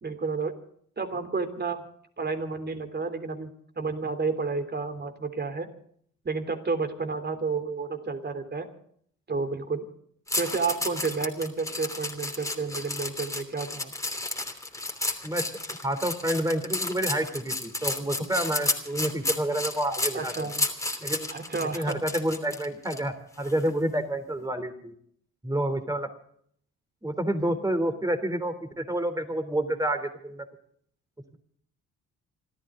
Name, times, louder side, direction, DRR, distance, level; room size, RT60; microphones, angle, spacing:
voice 1, 0.0-0.5 1.0-1.8 2.2-3.5 3.8-5.7 6.2-8.7 9.3-9.9 10.3-13.9 20.1-20.6 21.3-22.0, right 4 dB, 35° right, 9 dB, 3.2 m, -31 dB
sound 1, 10.3-23.0 23.4-23.7, left 2 dB, 10° left, 3.0 m, -32 dB
voice 2, 15.8-20.5 21.0-24.9 25.4-26.1 27.0-30.4, right 1 dB, 10° right, 9 dB, 3.3 m, -29 dB
27.0 x 13.5 x 3.8 m, 0.63 s
cardioid pair, 90°, 30 cm